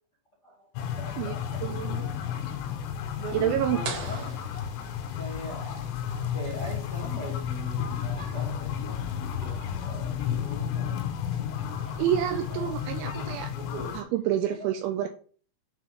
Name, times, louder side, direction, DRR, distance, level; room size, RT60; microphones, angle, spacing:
voice 1, 0.4-2.6 3.1-4.4 5.2-12.1 12.3-14.1 14.5-14.6, left 1 dB, 30° left, 1.8 m, -42 dB
sound 1, 0.8-14.0, left 8 dB, 85° left, 3.7 m, -32 dB
voice 2, 1.6-2.1 3.3-3.8 12.0-13.5 13.9-15.1, right 11 dB, 80° right, 2.8 m, -28 dB
sound 2, 3.8-5.5, right 5 dB, 65° right, 2.6 m, -39 dB
8.5 x 3.8 x 4.9 m
omnidirectional pair, 5.8 m